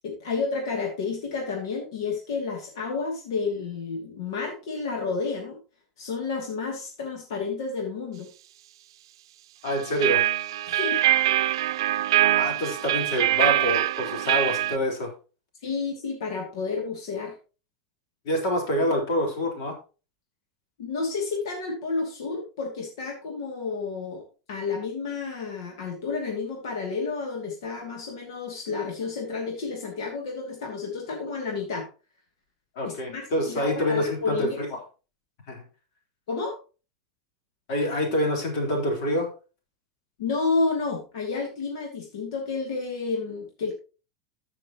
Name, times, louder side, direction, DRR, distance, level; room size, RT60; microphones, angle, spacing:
voice 1, 0.0-5.6 6.0-8.3 10.7-11.0 15.6-17.3 20.8-24.2 24.5-31.9 32.8-34.6 36.3-36.6 40.2-43.7, left 4 dB, 75° left, 0 dB, 2.6 m, -30 dB
voice 2, 9.6-10.2 12.3-15.1 18.2-19.7 32.8-34.7 35.5-35.6 37.7-39.3, equal, 55° left, 1 dB, 4.0 m, -26 dB
sound 1, 9.7-14.8, right 13 dB, 90° right, 0.5 m, -23 dB
14.0 x 6.3 x 3.0 m, 0.34 s
supercardioid pair, 165°, 2 cm